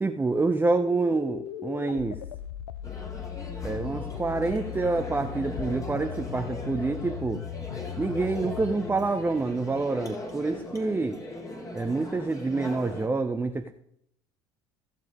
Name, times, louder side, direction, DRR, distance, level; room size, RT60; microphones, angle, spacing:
voice 1, 0.0-2.2 3.6-7.4 8.0-11.2 11.7-13.7, right 3 dB, 15° right, 6 dB, 0.8 m, -27 dB
sound 1, 0.8-10.1, left 12 dB, 90° left, 0.4 m, -39 dB
sound 2, 2.8-13.1, left 1 dB, 25° left, 2.7 m, -39 dB
16.0 x 7.4 x 3.7 m, 0.70 s
hypercardioid pair, 70°, 13 cm